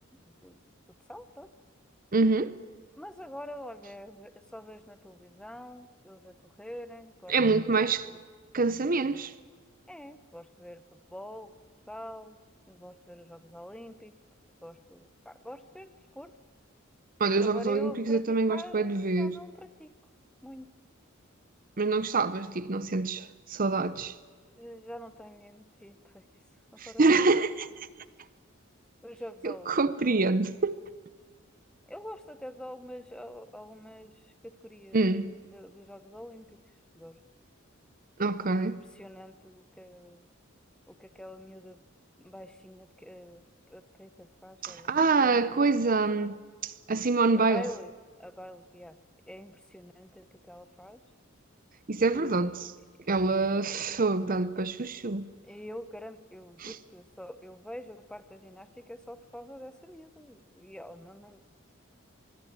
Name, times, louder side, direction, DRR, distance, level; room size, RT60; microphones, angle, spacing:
voice 1, 0.1-0.6 1.1-1.5 2.9-7.3 9.9-10.8 11.1-11.5 11.9-12.4 12.7-14.1 14.6-16.3 17.4-19.9 20.4-20.7 24.6-26.2 26.9-27.0 27.3-27.4 29.0-29.8 30.1-30.4 31.9-34.1 34.6-35.0 35.5-36.6 36.9-37.2 38.4-40.2 40.9-41.8 42.2-45.6 47.5-47.9 48.2-49.0 49.3-51.0 52.1-52.7 53.1-53.6 55.5-61.4, equal, 5° left, 1.0 m, -45 dB
voice 2, 2.1-2.5 7.3-8.1 8.5-9.3 17.2-19.4 21.8-24.1 26.8-27.9 29.4-30.8 34.9-35.3 38.2-38.8 44.6-47.6 51.9-52.7 53.1-55.3 56.6-56.8, right 3 dB, 40° right, 0.8 m, -26 dB
25.0 x 22.0 x 8.9 m
head